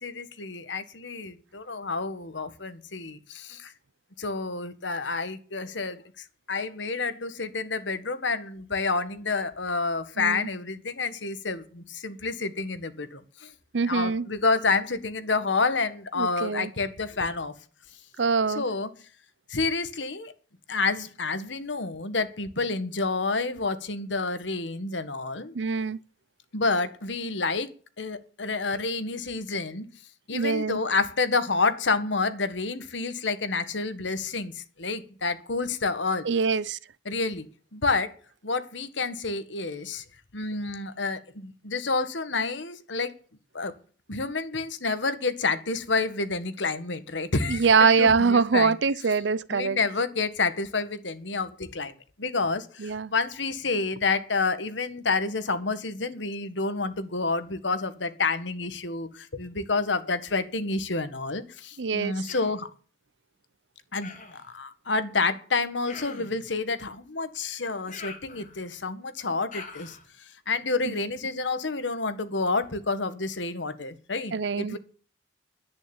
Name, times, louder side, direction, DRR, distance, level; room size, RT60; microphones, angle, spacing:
voice 1, 0.0-3.7 4.2-13.5 13.9-17.5 18.5-18.9 19.5-20.3 20.7-25.5 26.5-27.7 28.0-29.9 30.3-36.3 37.0-38.1 38.4-40.0 40.3-43.1 43.5-43.7 44.1-47.7 48.0-48.8 49.5-51.9 52.2-62.7 63.9-64.1 64.5-70.0 70.5-74.8, left 3 dB, 80° left, 1.7 m, -29 dB
voice 2, 10.2-10.5 13.7-14.3 16.2-16.7 18.2-18.6 25.5-26.0 30.3-30.8 36.2-36.8 47.5-49.8 52.8-53.1 61.8-62.2 70.9-71.0 74.3-74.8, right 5 dB, 75° right, 0.6 m, -23 dB
Human voice, 62.3-62.6 64.0-64.5 65.9-66.4 67.9-68.8 69.5-70.0, left 4 dB, 45° left, 3.3 m, -43 dB
10.5 x 9.4 x 8.9 m
head